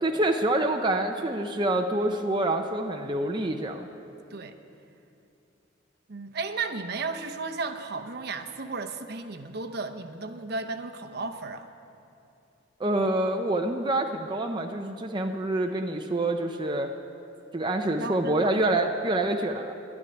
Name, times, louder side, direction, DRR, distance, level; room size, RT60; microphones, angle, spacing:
voice 1, 0.0-3.9 12.8-16.9 17.5-19.7, right 1 dB, 25° right, 3 dB, 0.6 m, -26 dB
voice 2, 6.1-11.7 18.0-18.5, right 3 dB, 55° right, 6 dB, 0.8 m, -34 dB
12.0 x 9.8 x 10.0 m, 2.7 s
head